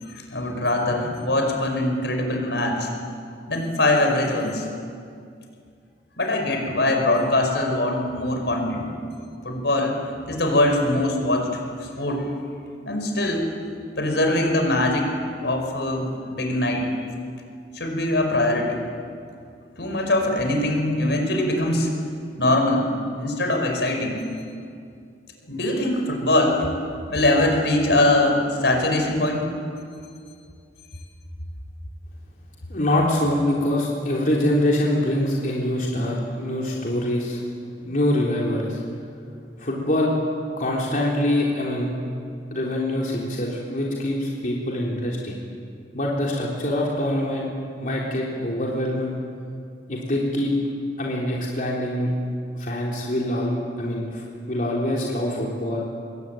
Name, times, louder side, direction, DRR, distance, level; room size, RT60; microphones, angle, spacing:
voice 1, 0.1-2.9 3.5-4.7 6.2-8.9 9.4-11.5 11.8-12.3 12.9-13.5 14.0-15.1 15.4-16.9 17.8-18.8 19.8-21.9 22.4-22.8 23.2-24.2 25.5-26.7 27.1-29.5, left 1 dB, 75° left, 3 dB, 5.3 m, -22 dB
voice 2, 32.7-37.4 37.8-38.8 39.6-40.1 40.6-41.9 42.5-45.4 45.9-47.5 47.8-49.1 49.9-50.5 51.0-52.1 52.6-55.8, left 1 dB, 50° left, -3 dB, 3.7 m, -24 dB
25.0 x 22.5 x 9.3 m, 2.3 s
head